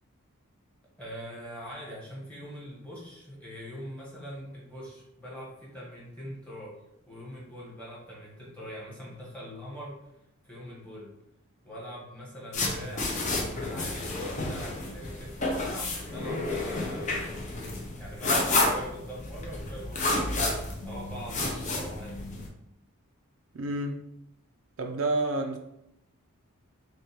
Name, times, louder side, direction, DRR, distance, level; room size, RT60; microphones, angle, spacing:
voice 1, 1.0-6.8 7.1-10.0 10.4-11.1 11.6-17.3 18.0-20.5 20.8-22.2, equal, 5° left, -6 dB, 1.3 m, -42 dB
sound 1, 12.5-22.5, left 2 dB, 35° left, 0.6 m, -30 dB
voice 2, 23.5-24.0 24.8-25.6, right 2 dB, 65° right, 4 dB, 0.4 m, -29 dB
6.2 x 2.3 x 3.0 m, 0.80 s
head